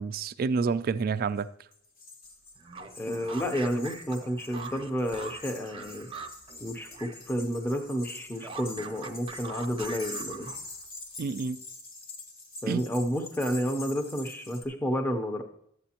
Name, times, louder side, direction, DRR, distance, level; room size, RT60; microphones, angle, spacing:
voice 1, 0.0-1.5 11.2-11.6 12.7-12.8, right 5 dB, 45° right, 0.3 m, -28 dB
sound 1, 1.4-1.5 1.7-14.6, left 2 dB, 50° left, 1.1 m, -45 dB
sound 2, 2.6-7.3 7.6-10.8, right 4 dB, 25° right, 0.7 m, -43 dB
voice 2, 3.0-6.1 6.6-10.5 12.6-15.4, equal, 10° left, 0.6 m, -31 dB
11.5 x 8.3 x 2.9 m
head